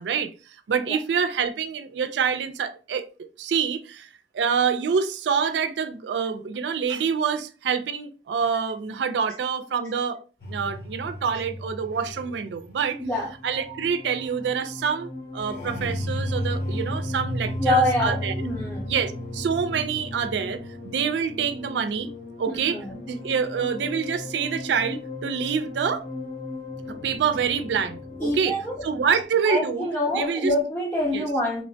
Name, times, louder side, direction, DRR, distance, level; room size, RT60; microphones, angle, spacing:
voice 1, 0.0-4.1 4.3-10.2 10.5-13.0 13.4-18.5 18.9-22.1 22.4-26.1 26.9-29.9 30.1-30.5 31.1-31.3, right 6 dB, 75° right, 0.4 m, -26 dB
sound 1, 10.4-29.2, left 1 dB, 55° left, 0.6 m, -35 dB
voice 2, 17.6-18.9 22.5-23.0 28.2-28.7 29.4-31.6, left 1 dB, 10° left, 0.5 m, -25 dB
3.0 x 2.1 x 2.6 m
head